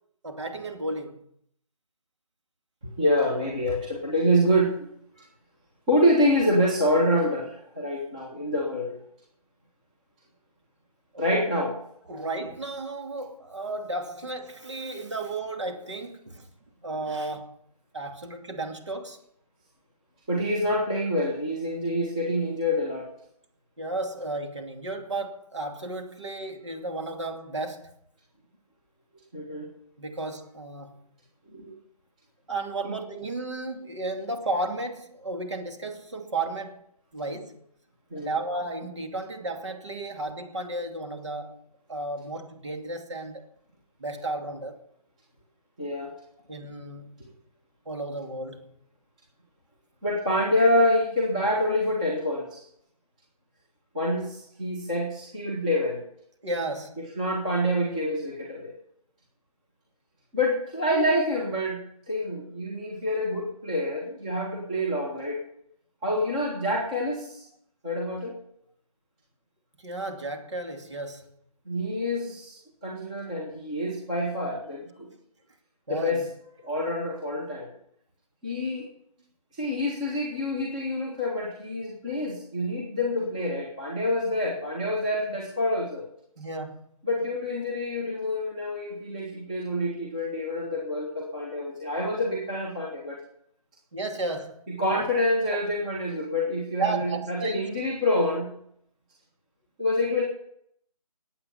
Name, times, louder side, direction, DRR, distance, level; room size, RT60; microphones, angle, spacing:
voice 1, 0.2-1.2 11.1-11.4 12.1-16.5 16.8-17.6 17.9-19.2 23.8-27.9 30.0-31.1 32.5-36.8 37.1-37.6 38.1-41.6 41.9-43.4 44.0-44.8 46.5-47.3 47.9-48.7 56.4-57.0 69.8-71.3 75.9-76.3 86.4-87.0 93.9-94.6 94.9-95.0 96.8-97.7, right 2 dB, 50° right, 2.5 m, -33 dB
voice 2, 2.8-4.9 5.2-5.3 5.9-9.0 11.2-11.7 20.3-23.1 29.3-29.7 31.5-31.7 32.8-32.9 38.1-38.3 45.8-46.1 50.0-52.6 53.9-56.0 57.2-58.7 60.3-65.4 66.0-67.4 67.8-68.3 71.7-75.1 75.9-76.2 76.6-77.7 78.4-78.8 79.5-86.0 87.0-93.2 94.7-98.5 99.8-100.2, left 1 dB, 10° right, 1.5 m, -27 dB
19.5 x 8.7 x 5.6 m
figure-of-eight pair, 175°, 19 cm